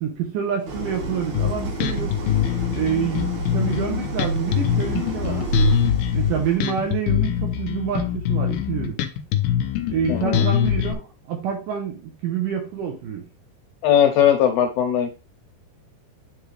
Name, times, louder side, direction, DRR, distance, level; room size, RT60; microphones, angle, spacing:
voice 1, 0.0-2.2 2.7-5.5 6.1-9.0 9.9-11.0 11.3-13.2, right 8 dB, 75° right, 2 dB, 2.0 m, -27 dB
Idling, 0.7-6.7, right 2 dB, 55° right, 2.1 m, -28 dB
Bass guitar, 1.3-10.9, left 10 dB, 90° left, 2.2 m, -23 dB
voice 2, 10.1-10.5 13.8-15.1, left 9 dB, 75° left, 4 dB, 2.4 m, -18 dB
10.5 x 3.6 x 3.2 m, 0.31 s
omnidirectional pair, 5.3 m